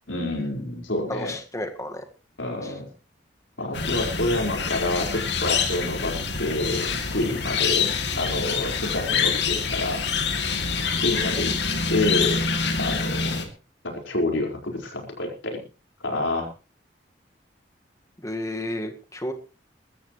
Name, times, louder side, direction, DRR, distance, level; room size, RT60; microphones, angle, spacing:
voice 1, 0.1-1.3 2.4-2.9 3.6-10.0 11.0-11.5 11.9-12.4 12.8-13.5 13.8-15.6 16.0-16.5, left 2 dB, 90° left, 2 dB, 4.9 m, -28 dB
voice 2, 1.1-2.0 2.6-2.7 18.2-19.3, left 1 dB, 15° left, 5 dB, 1.7 m, -32 dB
sound 1, 3.7-13.4, left 5 dB, 65° left, 2.6 m, -26 dB
22.0 x 13.0 x 3.2 m, 0.34 s
head